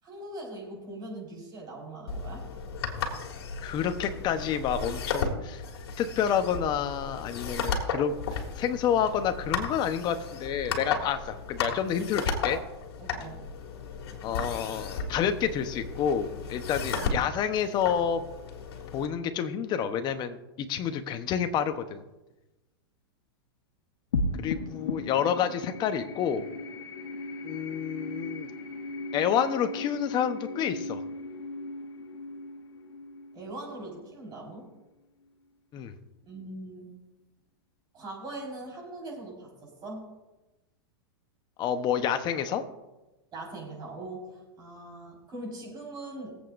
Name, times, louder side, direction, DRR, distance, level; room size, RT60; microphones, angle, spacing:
voice 1, 0.0-2.5 13.0-13.5 17.0-17.2 33.3-34.7 36.2-36.9 37.9-40.1 43.3-46.3, right 2 dB, 30° right, -2 dB, 4.7 m, -41 dB
sound 1, 2.1-19.1, left 5 dB, 70° left, 2.1 m, -35 dB
voice 2, 3.6-5.6 6.0-12.6 14.2-18.2 18.9-22.0 24.4-26.4 27.4-28.5 29.1-31.0 35.7-35.9 41.6-42.6, left 8 dB, 35° left, 9 dB, 1.0 m, -29 dB
Deep Kick + Tension, 24.1-34.8, left 3 dB, 90° left, 1.4 m, -37 dB
22.5 x 8.1 x 2.6 m, 1.1 s
hypercardioid pair, 135°, 13 cm